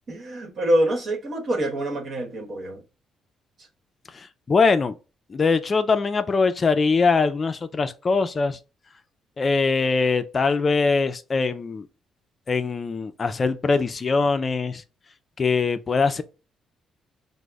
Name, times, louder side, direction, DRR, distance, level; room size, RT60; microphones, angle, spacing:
voice 1, 0.1-2.8, right 1 dB, 55° right, 1.0 m, -25 dB
voice 2, 4.1-4.9 5.3-8.6 9.4-11.9 12.5-14.8 15.4-16.2, left 4 dB, 35° left, 0.3 m, -22 dB
5.0 x 2.0 x 3.3 m
cardioid pair, 90°, 0 cm